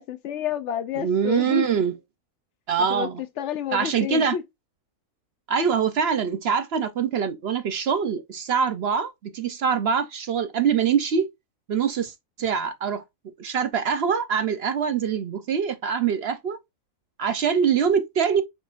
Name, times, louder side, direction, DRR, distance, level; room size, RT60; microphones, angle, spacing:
voice 1, 0.0-1.7 2.9-3.1 3.4-4.4, left 9 dB, 65° left, 0.8 m, -29 dB
voice 2, 1.0-1.9 2.7-3.2 3.7-4.4 5.5-11.3 11.7-13.0 13.4-16.6 17.2-18.4, right 7 dB, 60° right, 0.8 m, -24 dB
5.7 x 3.8 x 2.4 m
omnidirectional pair, 1.4 m